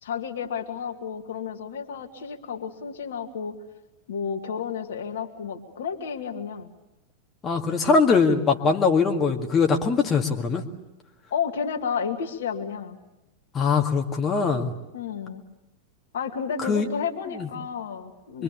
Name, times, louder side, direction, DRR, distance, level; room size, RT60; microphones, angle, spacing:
voice 1, 0.0-3.6 4.1-6.7 11.3-13.0 14.9-15.4 16.1-18.4, left 6 dB, 60° left, 5 dB, 2.1 m, -31 dB
voice 2, 7.4-10.6 13.5-14.7 16.6-16.9 17.4-17.5 18.3-18.4, left 5 dB, 25° left, 2 dB, 2.0 m, -22 dB
26.0 x 23.5 x 8.4 m, 0.98 s
figure-of-eight pair, 90°, 0 cm